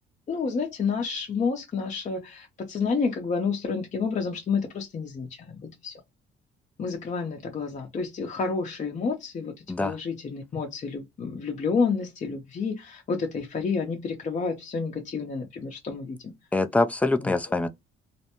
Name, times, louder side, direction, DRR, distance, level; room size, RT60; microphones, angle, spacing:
voice 1, 0.3-5.9 6.8-16.3 17.2-17.5, left 5 dB, 40° left, 0.7 m, -30 dB
voice 2, 16.5-17.7, left 2 dB, 5° left, 0.4 m, -24 dB
2.5 x 2.1 x 2.8 m
cardioid pair, 90°, 20 cm